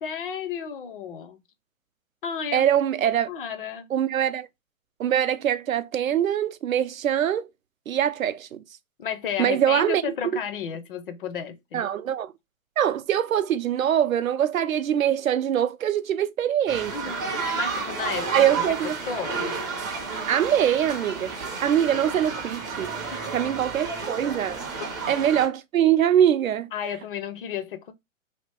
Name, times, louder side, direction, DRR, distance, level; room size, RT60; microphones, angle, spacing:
voice 1, 0.0-1.4 2.2-2.7 3.3-3.9 9.0-11.8 16.9-18.8 19.1-19.5 23.1-23.2 26.7-27.9, left 7 dB, 40° left, 0.5 m, -33 dB
voice 2, 2.5-3.3 3.9-4.5 5.0-7.5 7.9-8.6 9.4-10.0 11.7-12.3 12.8-16.9 18.3-19.0 20.3-21.3 21.6-24.6 25.1-26.7, right 10 dB, 80° right, 0.5 m, -23 dB
sound 1, 16.7-25.5, right 4 dB, 15° right, 0.4 m, -31 dB
2.8 x 2.6 x 3.3 m
figure-of-eight pair, 125°, 41 cm